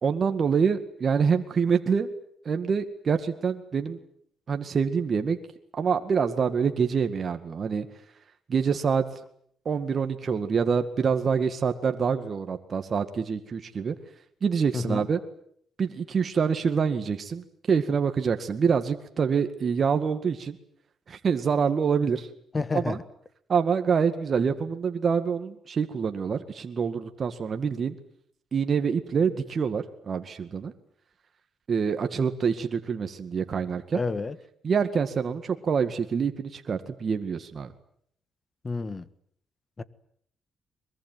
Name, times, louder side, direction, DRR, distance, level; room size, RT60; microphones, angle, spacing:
voice 1, 0.0-2.1 2.5-4.0 4.5-5.4 5.7-7.9 8.5-9.0 9.7-13.9 14.4-15.2 15.8-20.6 21.1-22.3 22.7-23.0 23.5-27.9 28.5-30.7 31.7-34.0 34.6-37.7, right 6 dB, 45° right, 2.0 m, -26 dB
voice 2, 14.7-15.0 22.5-23.0 33.9-34.4 38.6-39.0 39.8-39.9, left 3 dB, 30° left, 1.5 m, -29 dB
23.0 x 22.5 x 9.3 m
cardioid pair, 90°, 0 cm